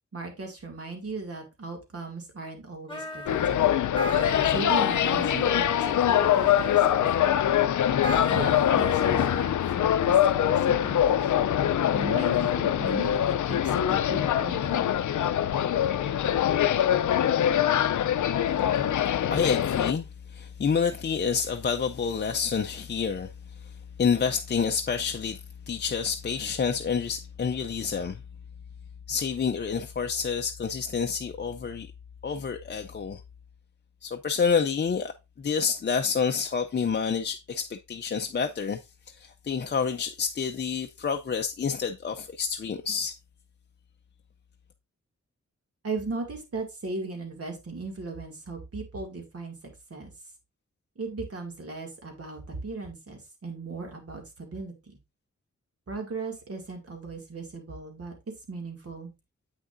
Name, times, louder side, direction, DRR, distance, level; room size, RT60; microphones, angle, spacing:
voice 1, 0.1-3.8 4.4-7.3 8.3-11.3 11.9-14.9 45.8-49.5 49.9-50.1 51.0-55.0 55.9-58.1 58.5-59.1, right 3 dB, 55° right, 2.3 m, -37 dB
sound 1, 2.9-9.5, left 1 dB, 15° left, 1.7 m, -36 dB
sound 2, 3.3-19.9, left 10 dB, 90° left, 0.5 m, -23 dB
voice 2, 19.3-23.3 23.6-23.7 24.0-28.2 29.1-31.9 32.2-33.2 34.0-38.8 39.1-43.2, left 6 dB, 35° left, 0.5 m, -28 dB
8.1 x 6.2 x 2.6 m
wide cardioid pair, 110°, 29 cm